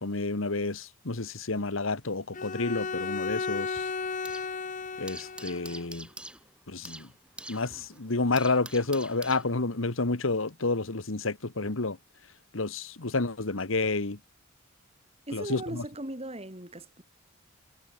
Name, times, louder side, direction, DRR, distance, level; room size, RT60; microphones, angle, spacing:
voice 1, 0.0-3.9 5.0-6.1 6.7-7.1 7.5-12.0 12.5-14.2 15.3-15.8, left 3 dB, 85° left, 1.6 m, -30 dB
Bowed string instrument, 2.3-5.8, left 4 dB, 40° left, 0.9 m, -34 dB
sound 1, 2.5-4.6 4.8-9.9, right 1 dB, 5° right, 6.6 m, -46 dB
voice 2, 15.3-17.0, right 1 dB, 30° right, 7.5 m, -38 dB
head